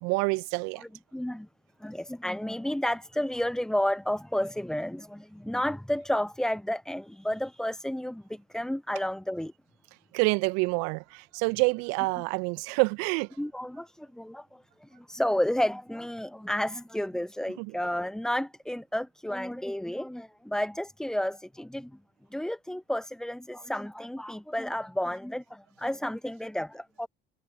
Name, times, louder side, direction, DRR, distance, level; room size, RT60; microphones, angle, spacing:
voice 1, 0.0-0.8 10.1-13.3 17.6-17.7, right 31 dB, 60° right, 1.7 m, -27 dB
voice 2, 0.8-1.5 1.8-9.5 13.4-21.9 22.3-27.1, left 1 dB, ahead, 0.9 m, -31 dB
figure-of-eight pair, 60°, 29 cm